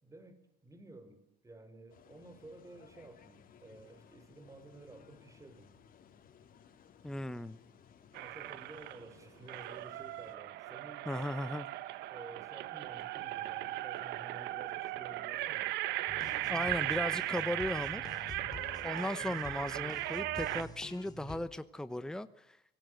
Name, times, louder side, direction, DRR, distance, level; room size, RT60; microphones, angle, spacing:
voice 1, 0.0-5.7 8.1-11.1 12.1-15.7, right 2 dB, 20° right, 10 dB, 4.8 m, -53 dB
sound 1, 1.9-10.4, left 7 dB, 55° left, 3.9 m, -60 dB
voice 2, 7.0-7.6 11.1-11.7 16.5-18.1 18.8-22.7, left 1 dB, 5° left, 12 dB, 0.9 m, -37 dB
sound 2, 8.1-9.0 9.5-20.7, right 16 dB, 85° right, 1.1 m, -37 dB
sound 3, 16.1-21.4, left 3 dB, 20° left, 3.8 m, -48 dB
25.5 x 18.0 x 7.8 m, 0.80 s
cardioid pair, 110°, 17 cm